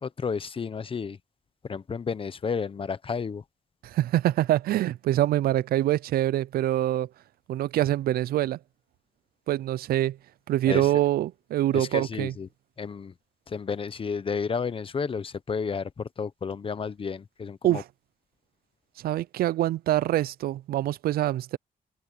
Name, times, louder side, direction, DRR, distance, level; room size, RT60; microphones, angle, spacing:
voice 1, 0.0-1.2 1.6-3.4 10.7-10.9 11.7-12.5 12.8-13.1 13.5-17.8, left 5 dB, 35° left, 1.0 m, -31 dB
voice 2, 3.8-7.1 7.5-8.6 9.5-10.2 10.5-12.3 17.6-17.8 19.0-21.6, right 14 dB, 80° right, 0.4 m, -25 dB
cardioid pair, 110°, 15 cm